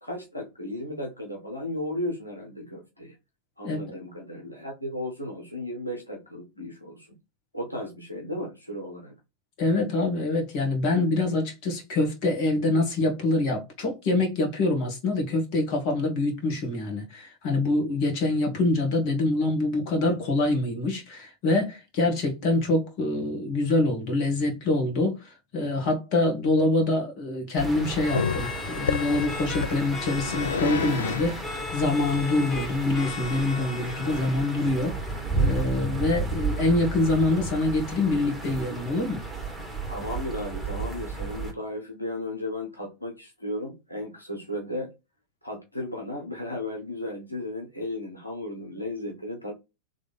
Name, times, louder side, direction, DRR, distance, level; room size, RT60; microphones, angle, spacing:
voice 1, 0.0-3.1 3.6-7.2 7.5-9.1 39.9-44.9 45.4-49.5, left 1 dB, 85° left, 1.3 m, -35 dB
voice 2, 3.6-4.0 9.6-35.0 35.3-39.2, left 2 dB, 45° left, 1.9 m, -25 dB
sound 1, 27.6-41.5, right 3 dB, ahead, 2.1 m, -33 dB
sound 2, 28.0-34.9, left 5 dB, 15° left, 1.0 m, -37 dB
Growling, 28.1-34.0, left 6 dB, 70° left, 0.3 m, -31 dB
3.6 x 3.4 x 4.2 m
figure-of-eight pair, 90°, 0 cm